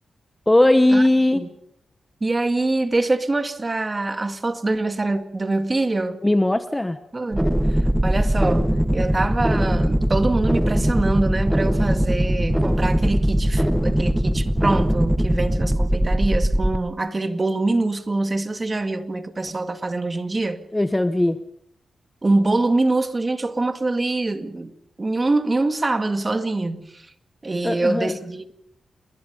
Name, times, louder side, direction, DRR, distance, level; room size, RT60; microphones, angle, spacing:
voice 1, 0.5-1.4 6.2-7.0 20.7-21.4 27.6-28.2, left 1 dB, 10° left, 1.0 m, -18 dB
voice 2, 2.2-6.2 7.1-20.6 22.2-24.7 25.0-27.1 27.4-28.5, right 2 dB, 25° right, 2.0 m, -24 dB
sound 1, 7.3-16.8, equal, 5° right, 1.3 m, -20 dB
28.0 x 21.5 x 5.4 m
wide cardioid pair, 110°, 0 cm